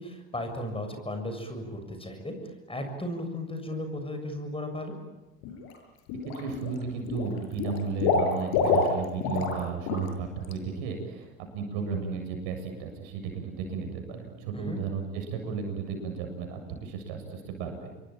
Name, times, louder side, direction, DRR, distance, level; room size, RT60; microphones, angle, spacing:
voice 1, 0.0-4.9 14.5-14.8, left 1 dB, 15° left, 6 dB, 7.1 m, -35 dB
Water / Liquid, 5.4-5.7 6.1-6.8 7.1-9.6 9.9-10.1 10.4-10.5, left 4 dB, 60° left, 7.1 m, -27 dB
voice 2, 6.3-17.9, right 5 dB, 65° right, 5 dB, 7.7 m, -34 dB
28.0 x 22.5 x 8.9 m, 1.1 s
hypercardioid pair, 80°, 41 cm